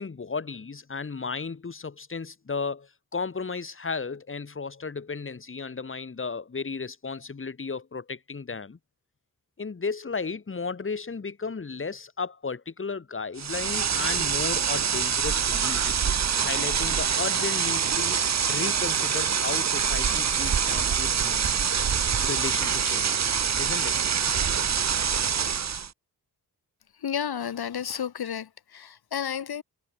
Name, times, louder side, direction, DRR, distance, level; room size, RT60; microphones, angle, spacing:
voice 1, 0.0-8.8 9.6-16.0 16.4-18.2 18.5-21.4 22.2-23.3 23.6-24.0 24.3-24.4, left 4 dB, 35° left, 2.0 m, -34 dB
sound 1, 13.4-25.9, right 7 dB, 45° right, 1.0 m, -25 dB
voice 2, 27.0-29.6, left 8 dB, 80° left, 2.8 m, -32 dB
wide cardioid pair, 110°, 37 cm